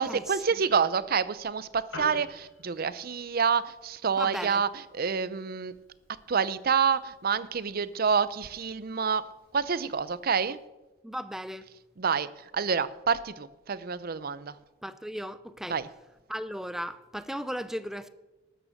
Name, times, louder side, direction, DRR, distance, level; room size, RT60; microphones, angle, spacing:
voice 1, 0.0-5.7 6.3-9.2 9.5-10.6 12.0-14.5 15.7-15.9, right 6 dB, 50° right, 0.6 m, -28 dB
Piano, 1.7-10.7, left 2 dB, 75° left, 4.8 m, -51 dB
voice 2, 4.2-4.6 11.0-11.7 14.8-15.8 16.3-18.1, equal, ahead, 0.5 m, -36 dB
13.0 x 9.0 x 6.5 m
head